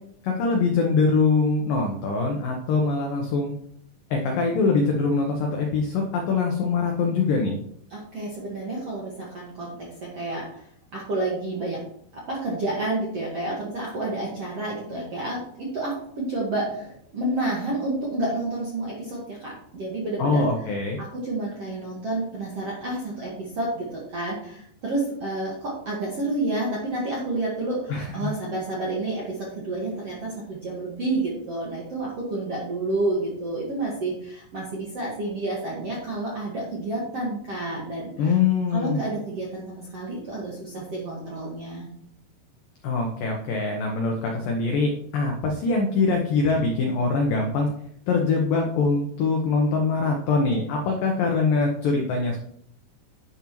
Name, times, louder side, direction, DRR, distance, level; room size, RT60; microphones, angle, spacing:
voice 1, 0.2-3.5 4.1-7.6 20.2-21.0 27.9-28.3 38.2-39.1 42.8-47.7 48.1-52.4, left 4 dB, 80° left, 2 dB, 2.0 m, -23 dB
voice 2, 7.9-10.6 10.9-11.8 12.1-20.5 21.0-38.3 38.7-41.9, right 2 dB, 60° right, -4 dB, 1.7 m, -30 dB
10.5 x 8.8 x 3.1 m, 0.68 s
omnidirectional pair, 5.3 m